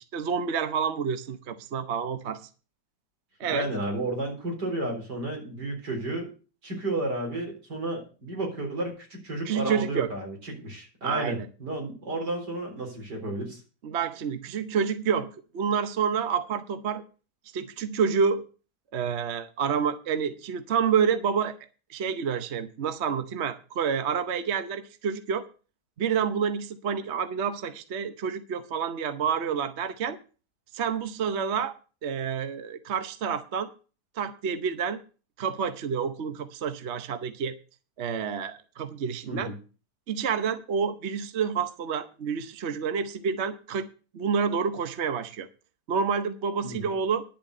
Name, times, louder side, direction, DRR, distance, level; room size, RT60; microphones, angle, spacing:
voice 1, 0.1-2.5 3.4-3.7 9.4-10.1 11.0-11.5 13.8-17.0 17.5-18.5 18.9-21.6 21.9-25.5 26.0-30.2 30.7-31.7 32.0-33.7 34.2-35.0 35.4-37.6 38.0-39.5 40.1-43.9 44.1-45.5 45.9-47.2, right 6 dB, 50° right, 10 dB, 1.0 m, -28 dB
voice 2, 3.5-6.3 6.6-13.6 39.3-39.6 46.6-46.9, right 2 dB, 80° right, 1 dB, 4.6 m, -32 dB
11.0 x 7.2 x 6.6 m, 0.36 s
omnidirectional pair, 1.8 m